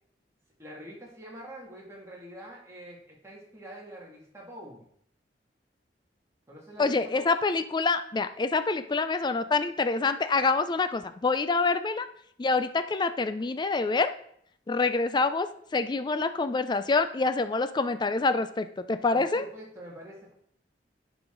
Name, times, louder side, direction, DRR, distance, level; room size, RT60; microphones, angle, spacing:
voice 1, 0.6-4.9 6.5-7.3 19.1-20.3, right 1 dB, 15° right, -3 dB, 2.2 m, -45 dB
voice 2, 6.8-12.1 12.4-14.1 14.7-15.5 15.7-19.4, left 3 dB, 25° left, 11 dB, 0.4 m, -26 dB
11.0 x 4.9 x 3.8 m, 0.66 s
head